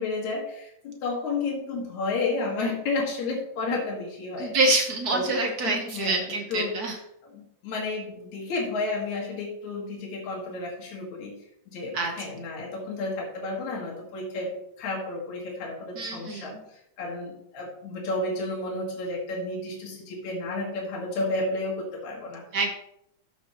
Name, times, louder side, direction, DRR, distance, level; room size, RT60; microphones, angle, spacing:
voice 1, 0.0-4.6 5.1-5.3 5.6-6.2 6.5-6.8 7.3-11.3 11.7-16.6 17.0-22.4, left 3 dB, 75° left, -3 dB, 3.0 m, -31 dB
voice 2, 4.4-7.0 11.9-12.1 15.9-16.6 22.5-22.7, right 2 dB, 70° right, 3 dB, 0.9 m, -26 dB
13.0 x 7.2 x 3.0 m, 0.78 s
omnidirectional pair, 3.3 m